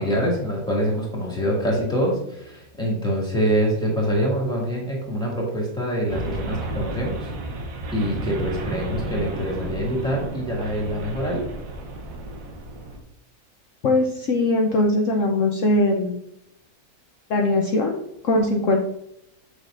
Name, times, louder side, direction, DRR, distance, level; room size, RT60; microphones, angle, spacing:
voice 1, 0.0-7.2 7.9-11.5, equal, 5° left, -3 dB, 2.0 m, -25 dB
sound 1, 6.1-13.0, right 2 dB, 70° right, 1.4 m, -32 dB
voice 2, 13.8-16.2 17.3-18.0 18.2-18.8, left 2 dB, 60° left, 1 dB, 1.1 m, -20 dB
6.8 x 6.5 x 2.5 m, 0.77 s
omnidirectional pair, 1.6 m